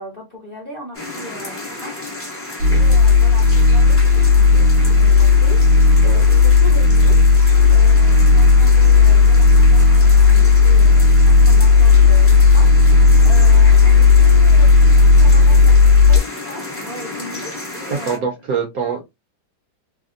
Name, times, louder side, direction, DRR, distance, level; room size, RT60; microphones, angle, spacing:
voice 1, 0.0-2.4 2.7-5.6 6.0-7.4 7.7-18.3 18.8-19.0, equal, 45° left, 0.7 m, -37 dB
sound 1, 0.9-18.2, left 2 dB, 20° left, 0.3 m, -32 dB
sound 2, 2.6-16.2, left 4 dB, 90° right, 1.4 m, -11 dB
voice 2, 18.1-19.1, right 6 dB, 65° right, 1.0 m, -24 dB
3.3 x 2.1 x 2.5 m
omnidirectional pair, 2.1 m